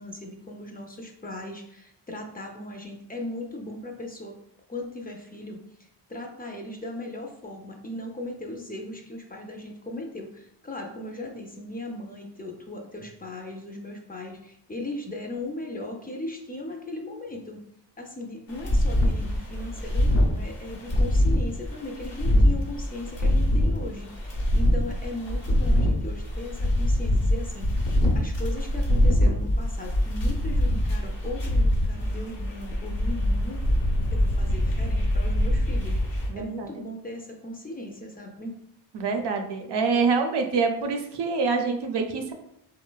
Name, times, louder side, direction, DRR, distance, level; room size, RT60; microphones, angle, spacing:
voice 1, 0.0-4.4 4.7-5.6 6.1-17.6 18.0-33.6 34.1-36.0 36.3-38.5, left 1 dB, 20° left, 2 dB, 0.4 m, -38 dB
sound 1, 18.5-36.3, left 1 dB, 85° left, 0.8 m, -24 dB
voice 2, 36.3-36.7 38.9-42.3, right 4 dB, 75° right, 4 dB, 0.5 m, -26 dB
3.0 x 2.1 x 2.2 m, 0.75 s
cardioid pair, 60°, 42 cm